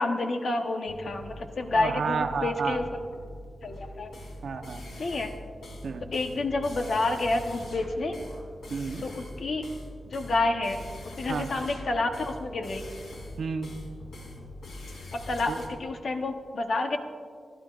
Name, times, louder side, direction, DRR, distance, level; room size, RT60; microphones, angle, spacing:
voice 1, 0.0-2.8 3.6-4.1 5.0-5.3 6.1-8.1 9.0-9.7 10.1-10.8 11.2-12.8 15.1-17.0, left 2 dB, 55° left, 4 dB, 1.1 m, -29 dB
sound 1, 0.9-15.7, left 1 dB, 80° left, 3.0 m, -42 dB
voice 2, 1.7-2.8 4.4-4.8 5.8-6.1 8.7-9.0 11.3-11.5 13.4-13.7 15.5-15.6, right 5 dB, 70° right, 6 dB, 0.9 m, -31 dB
27.5 x 12.5 x 2.5 m, 2.1 s
wide cardioid pair, 165°, 0 cm